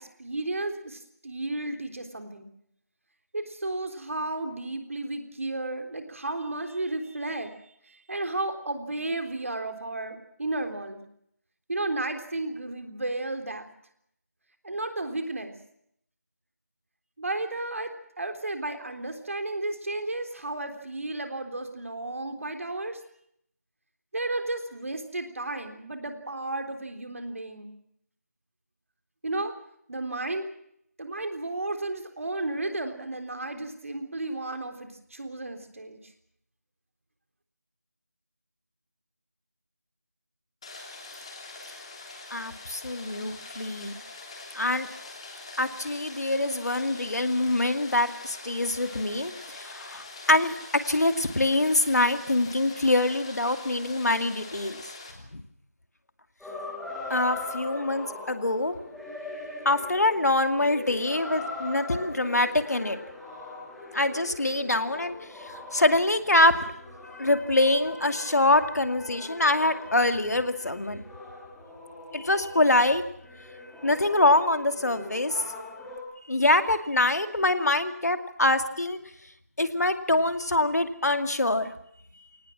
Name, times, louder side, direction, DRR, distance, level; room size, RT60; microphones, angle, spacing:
voice 1, 0.0-2.5 3.3-7.5 7.8-11.0 11.7-13.7 14.6-15.5 17.2-23.0 24.1-27.7 29.2-29.5 29.9-30.4 31.0-36.1, right 2 dB, 55° right, 6 dB, 3.7 m, -33 dB
Rain, 40.6-55.1, left 3 dB, 20° left, 3.2 m, -44 dB
voice 2, 42.3-44.0 44.5-44.9 45.6-50.6 50.9-54.8 55.3-55.4 57.1-58.8 59.6-63.0 63.9-65.1 65.4-66.6 67.0-71.0 72.1-73.0 73.8-75.4 76.3-79.0 79.6-81.7, left 2 dB, 75° left, 8 dB, 2.4 m, -24 dB
sound 1, 56.4-72.9 73.2-76.0, left 2 dB, ahead, 2.5 m, -41 dB
23.5 x 19.0 x 7.5 m, 0.71 s
figure-of-eight pair, 175°, 9 cm